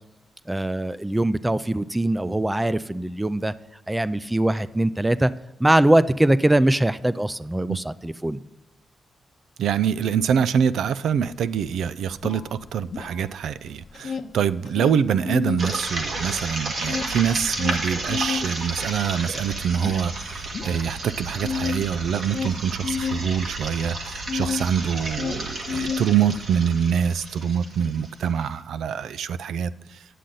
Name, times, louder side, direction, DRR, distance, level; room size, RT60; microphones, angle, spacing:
voice 1, 0.5-3.5 3.9-5.3 5.6-8.4, right 1 dB, 10° right, 0.3 m, -22 dB
voice 2, 9.6-30.0, right 8 dB, 90° right, 0.4 m, -25 dB
sound 1, 11.2-11.3 11.5-13.5 13.8-15.7 16.1-24.7 25.0-26.5, left 5 dB, 55° left, 0.7 m, -31 dB
sound 2, 15.6-28.4, right 2 dB, 60° right, 1.6 m, -32 dB
10.0 x 7.6 x 3.9 m
wide cardioid pair, 130°, 0 cm